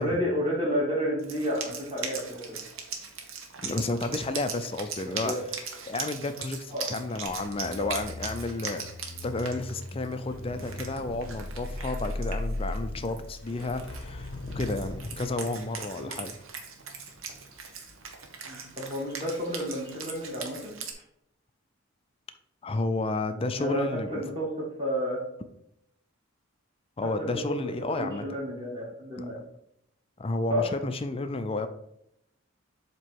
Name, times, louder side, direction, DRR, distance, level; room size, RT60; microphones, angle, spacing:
voice 1, 0.0-2.6 5.0-5.4 6.7-6.9 16.0-16.1 18.5-20.7 23.6-23.9 24.1-25.2 27.0-27.5 27.8-29.4 30.5-30.6, equal, 25° right, -5 dB, 1.9 m, -31 dB
Wind instrument woodwind instrument, 1.2-20.9, right 5 dB, 70° right, 1.0 m, -41 dB
voice 2, 3.6-5.3 5.8-8.9 9.2-16.4 22.6-24.2 27.0-28.4 29.2-29.3 30.2-31.7, left 2 dB, 25° left, 9 dB, 0.4 m, -31 dB
sound 1, 7.3-17.5 17.8-18.1, left 2 dB, 60° left, 0.7 m, -39 dB
7.5 x 3.0 x 4.6 m, 0.77 s
head